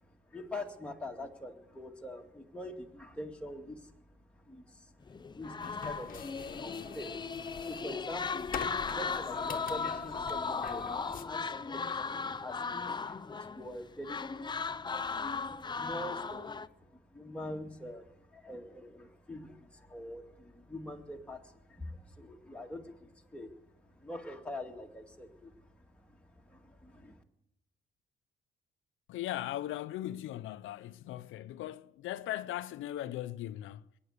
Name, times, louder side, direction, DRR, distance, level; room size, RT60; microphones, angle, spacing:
voice 1, 0.3-3.9 4.5-4.8 5.3-7.3 7.6-14.5 14.9-23.5 24.0-25.5 26.1-26.2 26.5-27.2, left 1 dB, 5° left, 2.2 m, -44 dB
sound 1, 5.1-13.8 14.0-16.7, left 5 dB, 20° left, 0.5 m, -37 dB
sound 2, 5.6-11.2, left 7 dB, 45° left, 1.1 m, -44 dB
voice 2, 29.1-33.9, left 13 dB, 80° left, 0.5 m, -38 dB
21.5 x 9.5 x 6.6 m
cardioid pair, 90°, 20 cm